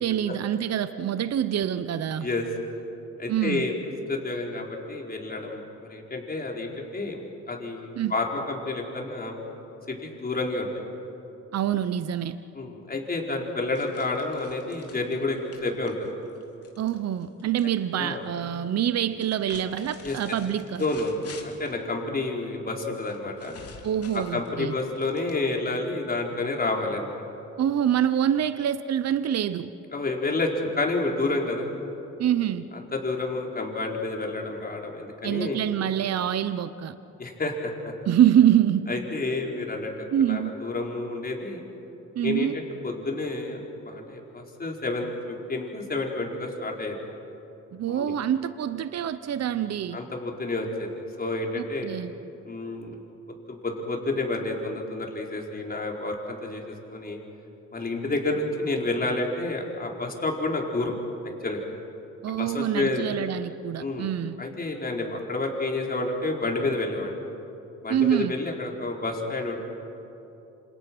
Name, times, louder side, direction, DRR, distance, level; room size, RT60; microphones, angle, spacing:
voice 1, 0.0-2.3 3.3-3.7 7.9-8.1 11.5-12.4 16.8-20.8 23.8-24.7 27.6-29.7 32.2-32.6 35.2-36.9 38.1-38.9 40.1-40.5 42.1-42.6 47.7-50.0 51.6-52.1 62.2-64.4 67.9-68.3, right 10 dB, 55° right, 12 dB, 0.9 m, -25 dB
voice 2, 3.2-3.7 4.1-9.4 9.9-10.8 12.5-16.1 17.9-18.2 20.0-20.4 20.8-23.5 24.1-27.2 29.9-31.7 32.7-35.6 37.2-37.9 38.9-39.9 40.2-41.6 42.2-43.6 43.8-47.0 47.9-48.1 49.9-50.9 51.2-51.9 52.4-53.0 53.5-57.2 57.7-61.0 61.4-61.6 62.4-63.1 63.8-64.1 64.4-67.2 67.8-69.6, left 2 dB, 30° left, 0 dB, 4.6 m, -30 dB
sound 1, 13.7-17.7 17.9-18.6 19.1-21.8 23.0-25.7, left 5 dB, 50° left, 3.2 m, -48 dB
28.0 x 27.0 x 6.2 m, 2.9 s
cardioid pair, 90°, 30 cm